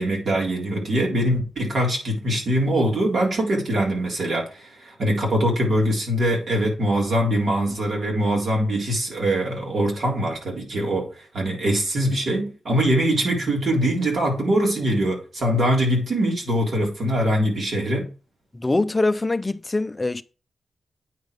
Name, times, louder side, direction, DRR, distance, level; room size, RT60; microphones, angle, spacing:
voice 1, 0.0-11.1 11.3-18.1, right 1 dB, 60° right, 3.9 m, -23 dB
voice 2, 18.5-20.2, left 2 dB, 20° left, 0.5 m, -23 dB
9.1 x 5.0 x 5.2 m
wide cardioid pair, 130°, 0 cm